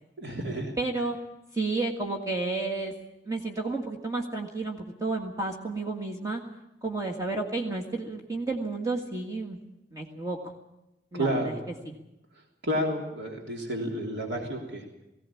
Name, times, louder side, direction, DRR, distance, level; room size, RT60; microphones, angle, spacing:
voice 1, 0.2-0.7 11.1-11.6 12.3-14.9, equal, 80° right, 1 dB, 3.2 m, -31 dB
voice 2, 0.8-1.2 1.5-2.9 3.2-6.4 6.8-9.6 9.9-10.4 11.1-11.5 11.8-11.9, right 3 dB, 20° right, 1 dB, 1.7 m, -31 dB
19.0 x 16.5 x 8.5 m, 0.92 s
head